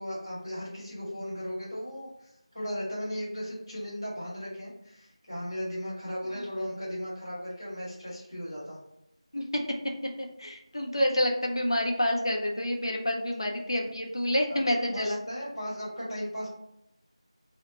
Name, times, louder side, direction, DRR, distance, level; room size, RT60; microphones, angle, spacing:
voice 1, 0.0-8.8 14.5-16.5, equal, ahead, -22 dB, 0.5 m, -36 dB
voice 2, 10.2-15.2, left 1 dB, 50° left, 1 dB, 0.5 m, -28 dB
3.0 x 2.0 x 4.0 m, 0.82 s
figure-of-eight pair, 180°, 3 cm